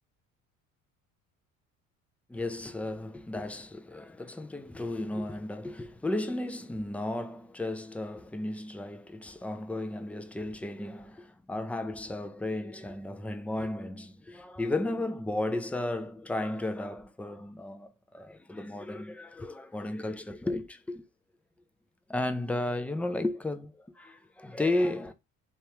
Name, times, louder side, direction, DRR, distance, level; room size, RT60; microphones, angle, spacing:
voice 1, 2.3-21.1 22.1-25.1, left 2 dB, 5° left, 0.4 m, -34 dB
3.4 x 3.2 x 2.9 m
hypercardioid pair, 65°, 40 cm